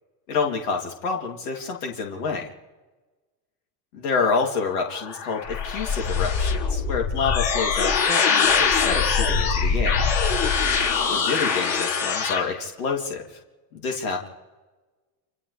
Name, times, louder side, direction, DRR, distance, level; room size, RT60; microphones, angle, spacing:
voice 1, 0.3-2.5 3.9-10.0 11.1-13.4 13.7-14.3, left 5 dB, 85° left, 0 dB, 3.4 m, -28 dB
sound 1, 4.7-12.4, left 5 dB, 70° left, 5.5 m, -23 dB
29.0 x 27.5 x 3.5 m, 1.2 s
supercardioid pair, 110°, 43 cm